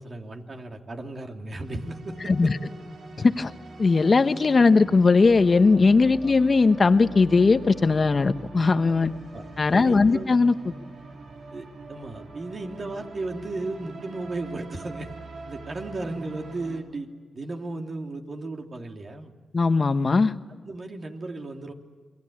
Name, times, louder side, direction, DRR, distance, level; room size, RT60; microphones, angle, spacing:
voice 1, 0.0-2.5 6.2-6.3 9.3-9.4 9.7-10.3 11.5-15.1 15.4-17.1 17.3-19.3 20.6-21.7, right 2 dB, 50° right, 3 dB, 3.1 m, -35 dB
sound 1, 1.6-16.8, right 3 dB, 75° right, 3.8 m, -43 dB
voice 2, 3.2-3.5 3.8-9.1 9.6-10.5 19.5-20.3, left 4 dB, 45° left, 10 dB, 1.2 m, -19 dB
29.0 x 21.5 x 8.8 m, 1.5 s
cardioid pair, 55°, 0 cm